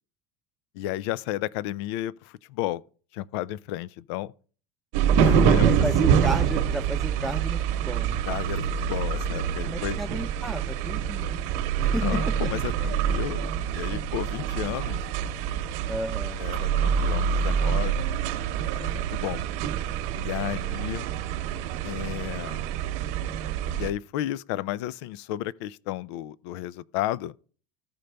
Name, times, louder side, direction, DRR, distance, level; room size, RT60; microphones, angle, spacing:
voice 1, 0.7-2.8 3.1-4.3 5.2-5.7 8.3-10.0 12.0-15.0 16.4-18.2 18.7-19.4 20.2-21.1 21.8-22.6 23.7-27.3, left 14 dB, 80° left, 0.4 m, -33 dB
sound 1, 4.9-23.9, right 8 dB, 65° right, 0.9 m, -26 dB
voice 2, 5.2-8.2 9.3-12.3 15.9-16.4, right 1 dB, ahead, 0.6 m, -33 dB
14.0 x 5.2 x 3.3 m
supercardioid pair, 130°, 14 cm